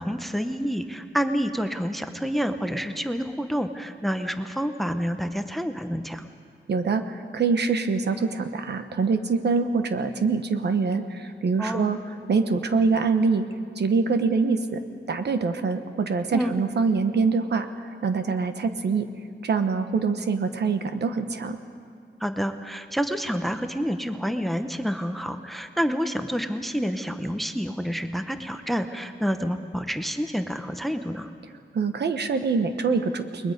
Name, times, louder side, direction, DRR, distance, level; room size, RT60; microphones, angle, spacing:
voice 1, 0.0-6.2 11.6-12.0 16.3-16.6 22.2-31.3, equal, ahead, 8 dB, 0.7 m, -28 dB
voice 2, 6.7-12.0 12.3-13.5 13.8-14.8 15.1-17.7 18.0-19.1 19.4-21.6 31.7-33.5, right 4 dB, 65° right, 8 dB, 1.2 m, -24 dB
29.5 x 21.0 x 5.3 m, 2.3 s
wide cardioid pair, 180°, 19 cm